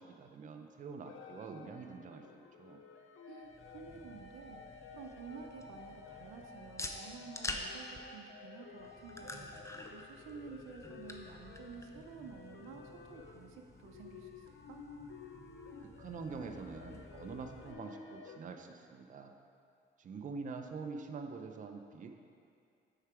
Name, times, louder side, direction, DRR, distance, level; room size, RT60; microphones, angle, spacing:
voice 1, 0.0-2.8 15.8-19.3 20.0-22.1, right 4 dB, 40° right, 5 dB, 0.5 m, -45 dB
sound 1, 1.0-18.4, left 5 dB, 75° left, 0.6 m, -53 dB
voice 2, 3.3-14.8, right 6 dB, 85° right, 4 dB, 0.6 m, -51 dB
sound 2, 3.4-17.7, left 2 dB, 15° left, 0.5 m, -49 dB
6.5 x 4.7 x 4.8 m, 2.4 s
cardioid pair, 90°, 20 cm